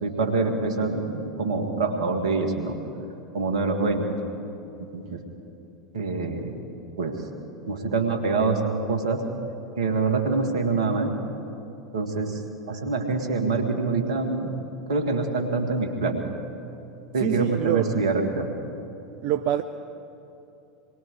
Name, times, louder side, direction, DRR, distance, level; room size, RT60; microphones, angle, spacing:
voice 1, 0.0-2.7 3.3-4.2 4.8-5.2 5.9-6.6 7.0-7.2 7.7-9.2 9.8-11.1 11.9-12.4 12.7-14.6 14.9-16.2 17.1-18.5, right 3 dB, 75° right, 4 dB, 2.4 m, -25 dB
voice 2, 17.2-18.0 19.2-19.6, right 12 dB, 50° right, 9 dB, 0.7 m, -25 dB
27.0 x 21.5 x 5.0 m, 2.9 s
hypercardioid pair, 85°, 3 cm